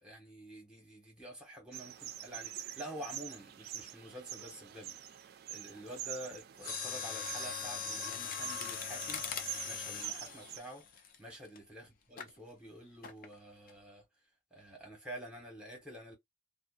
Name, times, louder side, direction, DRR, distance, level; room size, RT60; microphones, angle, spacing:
voice 1, 0.0-4.9 5.5-9.3 9.7-10.8 11.2-14.0 14.5-16.1, right 1 dB, 5° right, 1.3 m, -48 dB
sound 1, 1.7-10.6, right 11 dB, 50° right, 0.3 m, -46 dB
Mechanisms, 6.6-11.6 12.2-12.4 13.0-13.4 13.7-13.8, left 6 dB, 45° left, 0.5 m, -40 dB
2.7 x 2.2 x 2.4 m
head